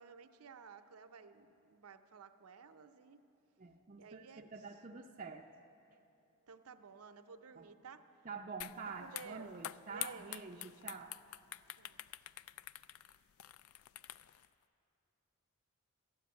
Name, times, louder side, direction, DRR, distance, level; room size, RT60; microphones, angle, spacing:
voice 1, 0.0-3.2 4.0-4.5 6.5-8.1 9.0-10.3 11.8-12.0, right 5 dB, 80° right, 9 dB, 0.6 m, -54 dB
voice 2, 3.6-5.5 7.6-7.7 8.2-11.1, right 4 dB, 35° right, -2 dB, 0.5 m, -47 dB
sound 1, 8.6-8.8 9.1-14.5, left 12 dB, 65° left, 0.3 m, -46 dB
13.0 x 7.8 x 9.4 m, 2.7 s
head